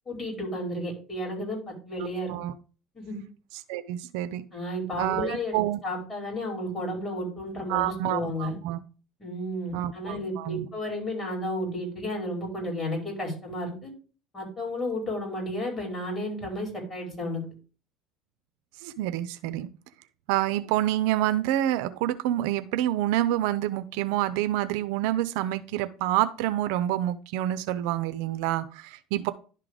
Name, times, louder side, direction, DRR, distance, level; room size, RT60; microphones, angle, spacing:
voice 1, 0.1-2.3 2.9-3.2 4.5-8.5 9.2-13.9 14.3-17.4, left 1 dB, 20° left, -1 dB, 5.3 m, -32 dB
voice 2, 3.7-4.4 5.0-5.8 7.7-8.8 9.7-10.7 18.8-19.7 20.3-29.3, right 13 dB, 85° right, 13 dB, 0.6 m, -27 dB
11.0 x 3.8 x 4.9 m, 0.37 s
supercardioid pair, 115°, 0 cm